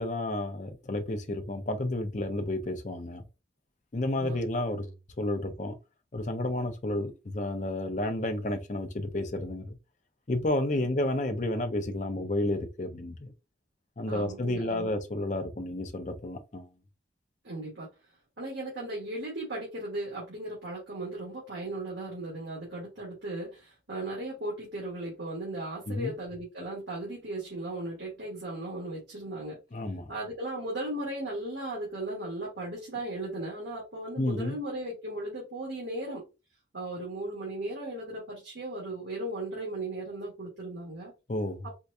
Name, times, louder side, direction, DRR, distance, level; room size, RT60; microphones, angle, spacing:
voice 1, 0.0-3.2 3.9-5.8 6.1-9.8 10.3-13.3 14.0-16.7 25.9-26.1 29.7-30.1 34.2-34.6 41.3-41.7, left 1 dB, 40° left, 0.6 m, -31 dB
voice 2, 14.1-14.9 17.4-17.9 18.4-29.6 30.1-36.2 36.7-41.1 41.6-41.8, right 1 dB, 75° right, 1.7 m, -37 dB
4.5 x 2.2 x 2.6 m
head